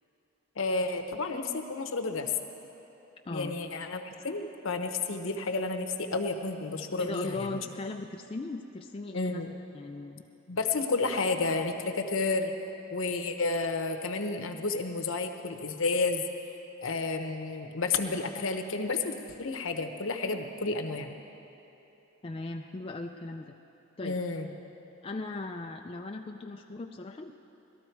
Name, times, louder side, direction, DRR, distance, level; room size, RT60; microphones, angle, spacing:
voice 1, 0.6-2.3 3.3-7.6 9.1-9.5 10.5-12.5 12.9-16.2 16.8-21.1 24.0-24.5, left 3 dB, 65° left, 6 dB, 0.9 m, -31 dB
voice 2, 3.3-3.6 7.0-9.4 9.7-10.2 22.2-23.5 24.0-24.2 25.0-27.3, left 2 dB, 25° left, 2 dB, 0.3 m, -38 dB
19.0 x 13.0 x 4.6 m, 3.0 s
head